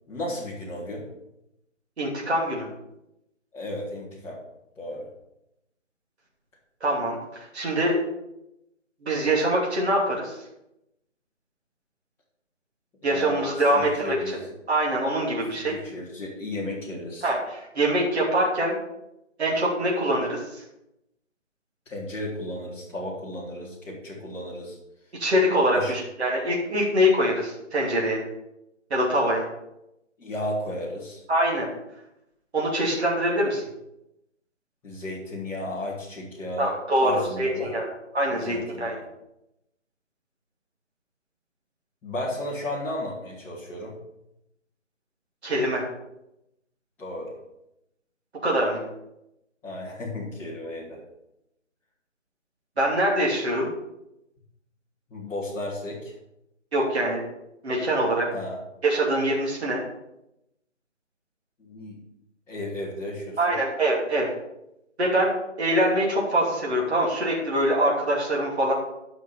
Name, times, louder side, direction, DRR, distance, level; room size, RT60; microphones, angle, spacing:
voice 1, 0.1-1.1 3.5-4.4 4.7-5.1 13.0-14.4 15.6-17.3 21.8-24.8 25.7-26.0 30.2-31.2 34.8-36.7 37.0-37.7 38.3-39.0 42.0-43.9 47.0-47.3 49.6-51.0 55.1-56.1 58.3-58.6 61.6-62.0 62.5-63.5, left 1 dB, 5° left, -10 dB, 1.5 m, -34 dB
voice 2, 2.0-2.7 6.8-8.0 9.0-10.4 13.0-14.4 14.7-15.7 17.2-18.8 19.4-20.4 25.2-28.2 28.9-29.5 31.3-31.7 32.5-33.6 36.6-37.9 38.1-39.0 45.4-45.8 48.4-48.8 52.8-53.7 56.7-57.2 57.6-58.2 58.8-59.8 63.4-64.3 65.0-65.3 65.6-68.7, right 1 dB, 55° right, -3 dB, 2.8 m, -24 dB
10.0 x 6.0 x 5.7 m, 0.86 s
figure-of-eight pair, 160°, 38 cm